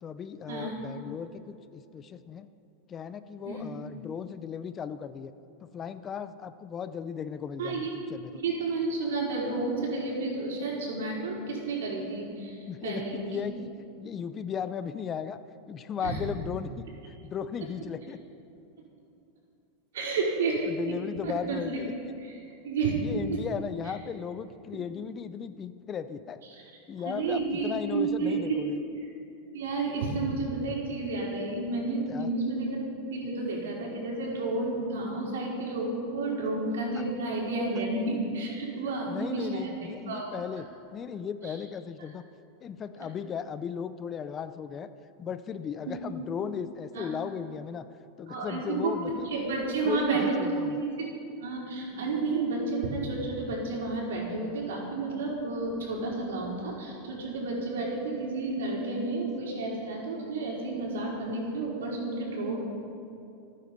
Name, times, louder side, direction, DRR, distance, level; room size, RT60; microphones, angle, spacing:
voice 1, 0.0-2.5 2.9-5.3 5.6-8.4 12.7-13.7 14.0-15.4 15.7-18.2 20.7-21.9 23.0-26.4 26.9-28.8 32.1-32.3 39.0-42.2 42.6-44.9 45.2-47.9 48.2-49.3 49.8-50.8, left 7 dB, 30° left, 12 dB, 0.6 m, -36 dB
voice 2, 7.6-7.9 8.3-13.2 16.0-16.2 19.9-20.6 21.2-21.6 22.2-22.9 23.3-23.4 26.5-26.8 27.0-28.6 29.5-40.5 41.4-41.6 45.8-46.0 46.9-47.1 48.3-48.9 49.2-50.5 51.0-51.1 51.4-62.6, right 3 dB, 90° right, -2 dB, 4.8 m, -31 dB
26.0 x 9.5 x 5.4 m, 2.6 s
supercardioid pair, 130°, 0 cm